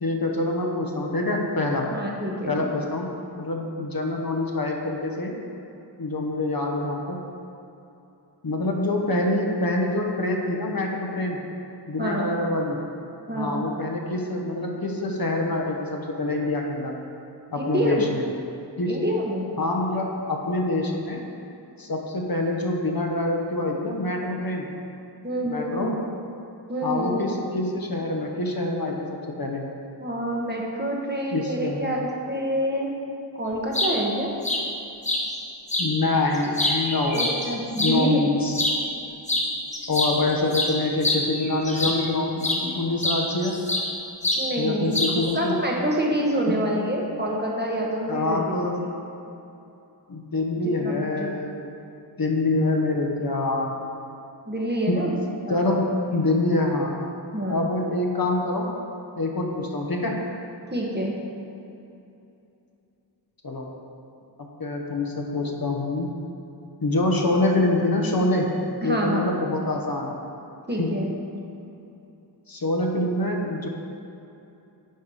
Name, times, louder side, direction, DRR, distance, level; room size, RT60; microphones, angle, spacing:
voice 1, 0.0-1.9 2.5-3.1 3.4-5.3 6.0-7.2 8.4-11.4 11.9-12.8 13.3-17.0 17.5-18.2 18.8-19.0 19.6-21.2 21.8-24.7 25.4-26.0 26.8-29.7 31.3-32.0 35.8-37.3 37.8-38.7 39.9-43.6 44.6-45.6 46.5-46.6 48.1-48.8 50.1-51.7 52.2-53.7 54.9-55.0 55.5-57.0 57.5-58.7 59.2-60.2 63.4-63.7 64.6-66.1 66.8-68.5 68.8-70.1 70.8-70.9 72.5-73.7, left 2 dB, 55° left, 0 dB, 1.1 m, -25 dB
voice 2, 1.9-2.7 12.0-12.3 13.3-13.7 17.6-18.0 18.9-19.5 25.2-25.9 26.7-27.2 30.0-33.0 33.4-34.3 37.1-38.3 44.4-48.6 50.8-51.3 54.5-55.6 57.3-57.7 60.7-61.2 68.8-69.4 70.7-71.1, right 1 dB, 25° right, -2 dB, 1.2 m, -27 dB
sound 1, 33.5-33.9 34.4-34.6 35.0-35.2 35.7-35.9 36.3-38.0 38.5-38.8 39.3-39.5 39.7-42.1 42.4-42.6 43.0-43.9 44.2-44.4 44.9-45.3, left 1 dB, 15° left, 1.0 m, -25 dB
10.0 x 4.6 x 4.9 m, 2.8 s
wide cardioid pair, 75°, 43 cm